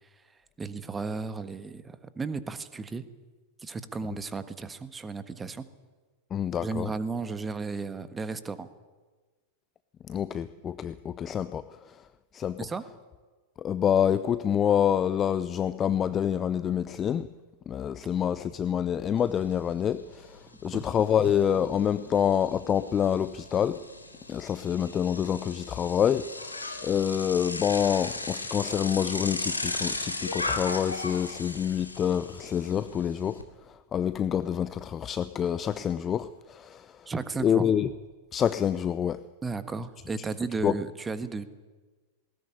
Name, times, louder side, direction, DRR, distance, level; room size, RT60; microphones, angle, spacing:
voice 1, 0.6-3.1 3.6-5.7 6.6-8.7 12.6-12.8 20.6-20.8 37.1-37.7 39.4-41.4, right 4 dB, 15° right, 12 dB, 1.5 m, -34 dB
voice 2, 6.3-6.9 10.1-12.0 12.3-12.6 13.6-17.3 17.7-23.8 24.3-33.4 33.9-37.0 37.4-37.9 38.3-39.2 40.6-40.7, left 9 dB, 25° left, 15 dB, 0.7 m, -27 dB
Bicycle, 19.2-19.3 19.6-33.4, left 2 dB, 80° left, 2.6 m, -37 dB
20.0 x 18.5 x 9.9 m, 1.3 s
figure-of-eight pair, 90°, 0 cm